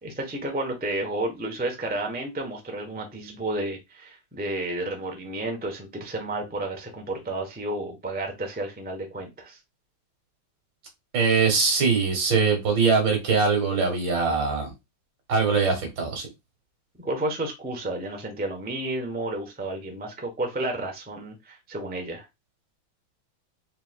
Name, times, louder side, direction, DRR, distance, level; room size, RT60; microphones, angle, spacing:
voice 1, 0.0-9.6 17.0-22.3, right 2 dB, 15° right, 0.3 m, -31 dB
voice 2, 11.1-14.7 15.3-16.3, right 5 dB, 70° right, 2.1 m, -22 dB
4.5 x 3.9 x 2.3 m
omnidirectional pair, 2.2 m